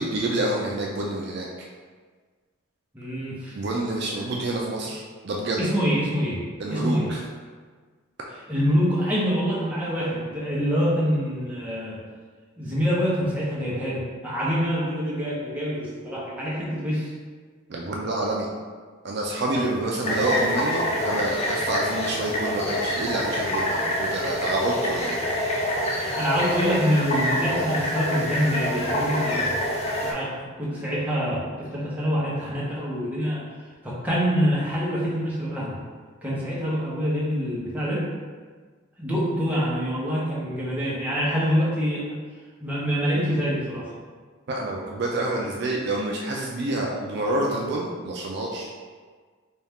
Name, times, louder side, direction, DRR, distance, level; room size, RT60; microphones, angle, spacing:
voice 1, 0.0-1.7 3.5-5.7 6.6-7.2 17.7-18.5 19.0-25.2 44.5-48.7, right 2 dB, 50° right, -2 dB, 0.4 m, -28 dB
voice 2, 2.9-3.6 5.6-6.4 6.7-7.1 8.5-12.0 12.6-17.1 19.5-19.9 26.0-29.6 30.0-33.4 33.8-35.8 36.2-38.0 39.0-42.2 42.6-43.9, equal, 5° right, -8 dB, 0.7 m, -25 dB
sound 1, 20.0-30.1, left 1 dB, 30° left, 0.4 m, -26 dB
4.1 x 2.3 x 3.5 m, 1.5 s
head